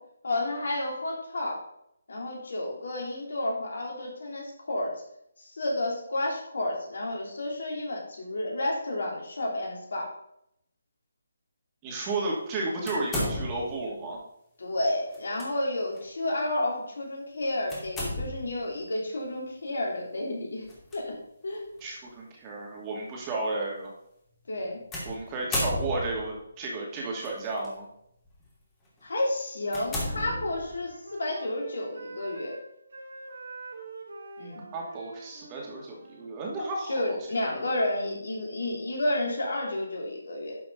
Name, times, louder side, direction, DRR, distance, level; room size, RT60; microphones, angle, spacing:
voice 1, 0.2-1.6 2.1-4.9 5.5-10.1 14.6-21.2 21.4-21.6 24.5-24.8 29.0-32.5 34.4-34.6 36.9-40.6, left 1 dB, 70° left, -1 dB, 3.3 m, -31 dB
voice 2, 11.8-14.2 21.8-23.9 25.0-27.9 34.7-37.2 37.4-37.7, right 2 dB, 20° right, -3 dB, 2.5 m, -33 dB
sound 1, 12.9-13.8 15.1-15.5 15.9-16.1 17.7-18.6 20.7-21.0 21.8-21.9 24.9-26.3 27.2-27.7 28.2-28.4 29.0-29.1 29.7-30.9, left 1 dB, 15° left, 2.9 m, -33 dB
Wind instrument woodwind instrument, 29.5-36.3, right 3 dB, 65° right, 2.0 m, -45 dB
11.5 x 5.8 x 4.0 m, 0.75 s
figure-of-eight pair, 150°, 0 cm